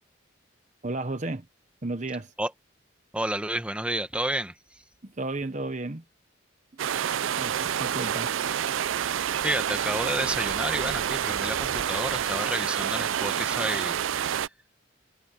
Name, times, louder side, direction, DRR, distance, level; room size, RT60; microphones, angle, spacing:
voice 1, 0.8-1.5 1.8-2.3 5.0-6.0 7.4-8.3, right 2 dB, 35° right, 1.0 m, -33 dB
voice 2, 3.1-4.5 9.4-14.5, right 1 dB, 5° right, 1.3 m, -30 dB
sound 1, 6.8-14.5, right 9 dB, 80° right, 0.4 m, -28 dB
head